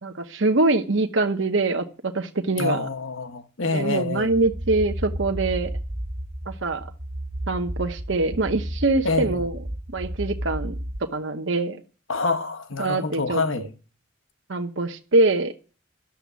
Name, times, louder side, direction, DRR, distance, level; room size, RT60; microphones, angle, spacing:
voice 1, 0.0-2.9 3.7-5.7 6.5-6.9 7.5-9.5 9.9-11.8 12.8-13.7 14.5-15.6, right 2 dB, 65° right, 1.0 m, -24 dB
voice 2, 2.6-4.4 9.0-9.4 12.1-13.7, left 3 dB, 75° left, 1.2 m, -26 dB
sound 1, 4.2-11.0, right 1 dB, 25° right, 0.7 m, -32 dB
11.5 x 7.2 x 9.4 m
head